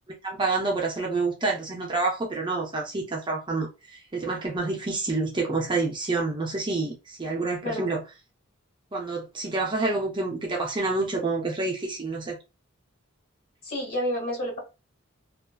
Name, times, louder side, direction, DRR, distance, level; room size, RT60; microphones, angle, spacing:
voice 1, 0.2-8.0 8.9-12.4, right 3 dB, 20° right, 0.5 m, -28 dB
voice 2, 13.6-14.6, equal, 45° left, 1.5 m, -29 dB
2.7 x 2.2 x 2.3 m
head